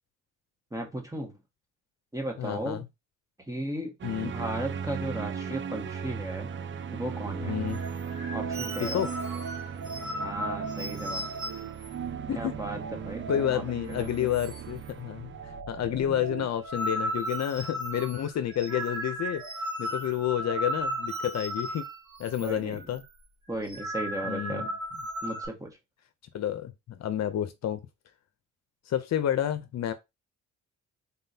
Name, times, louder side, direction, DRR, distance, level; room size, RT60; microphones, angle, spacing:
voice 1, 0.7-1.4 2.1-2.8 3.5-3.9 4.2-6.5 6.9-7.6 8.3-9.1 10.2-11.2 12.3-12.8 13.0-14.4 22.4-22.9 23.5-24.7 25.2-25.8, right 1 dB, 10° right, 1.6 m, -36 dB
voice 2, 2.4-2.8 4.0-4.3 7.4-7.8 8.8-9.1 12.3-12.5 13.3-15.3 15.7-19.4 19.8-21.9 22.2-23.0 24.2-24.7 26.3-27.8 28.9-29.9, left 10 dB, 60° left, 0.7 m, -30 dB
sound 1, 4.0-15.6, right 7 dB, 40° right, 0.5 m, -37 dB
sound 2, 7.7-13.6 13.9-14.1 14.3-14.9 15.2-22.5 22.8-23.0 23.5-25.5, right 1 dB, 70° right, 2.6 m, -36 dB
4.0 x 3.7 x 2.8 m
cardioid pair, 90°, 30 cm